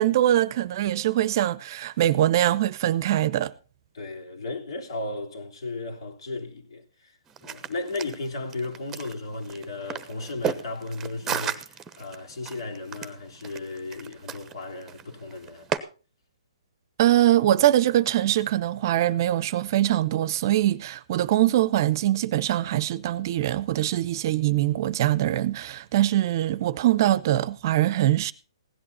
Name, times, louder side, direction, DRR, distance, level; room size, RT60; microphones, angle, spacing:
voice 1, 0.0-3.5 17.0-28.3, right 13 dB, 45° right, 0.7 m, -23 dB
voice 2, 3.9-15.7, left 2 dB, 65° left, 3.4 m, -35 dB
sound 1, 7.3-15.8, right 8 dB, 15° right, 0.9 m, -35 dB
16.5 x 11.0 x 4.2 m
hypercardioid pair, 140°, 3 cm